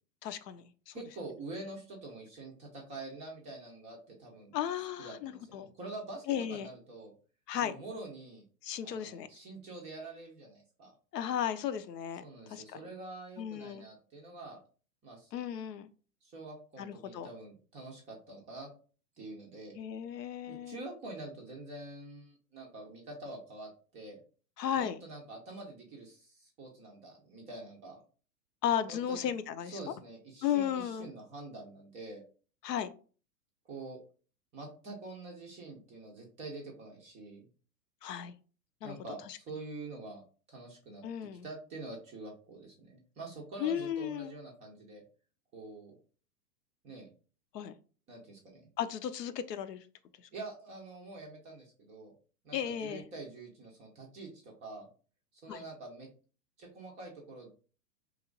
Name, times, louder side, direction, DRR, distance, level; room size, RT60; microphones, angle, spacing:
voice 1, 0.2-0.9 4.5-5.7 6.3-6.7 7.5-7.7 8.6-9.3 11.1-12.2 12.5-12.8 13.4-13.9 15.3-15.9 16.8-17.3 19.7-20.8 24.6-25.0 28.6-29.9 30.4-31.1 32.6-32.9 38.0-38.3 38.8-38.9 39.3-39.4 41.0-41.5 43.6-44.3 47.5-47.7 48.8-49.9 52.5-53.1 55.5-55.6, left 9 dB, 80° left, 11 dB, 0.6 m, -35 dB
voice 2, 0.9-4.5 5.0-7.1 7.6-8.4 8.8-10.9 12.2-14.6 15.0-15.3 16.2-18.7 19.2-19.8 20.5-24.2 24.8-28.0 28.9-29.3 29.7-32.2 33.7-34.0 34.5-37.5 38.8-41.0 41.4-45.0 45.5-46.0 46.8-47.1 48.1-48.7 50.3-52.1 52.4-54.9 55.4-56.1 56.6-57.5, right 2 dB, 15° right, -1 dB, 0.4 m, -46 dB
2.9 x 2.4 x 3.7 m, 0.38 s
hypercardioid pair, 110°, 49 cm